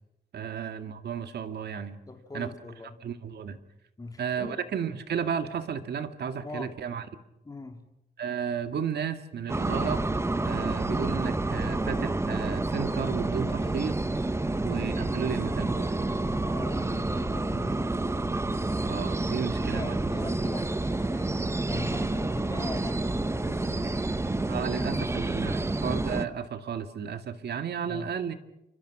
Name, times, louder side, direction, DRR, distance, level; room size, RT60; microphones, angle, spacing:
voice 1, 0.3-2.0 2.3-2.5 3.0-3.6 4.2-7.1 8.2-10.0 10.4-14.0 14.6-15.9 18.8-19.9 24.5-28.3, right 7 dB, 75° right, 8 dB, 2.1 m, -33 dB
voice 2, 2.1-3.1 4.0-4.6 6.4-6.8 7.4-7.9 16.5-18.2 19.5-21.3 21.6-23.9 27.9-28.1, left 3 dB, 20° left, 4 dB, 3.2 m, -41 dB
sound 1, 9.5-26.3, right 2 dB, 15° right, 1.0 m, -29 dB
29.5 x 26.0 x 6.1 m, 0.89 s
wide cardioid pair, 115°, 17 cm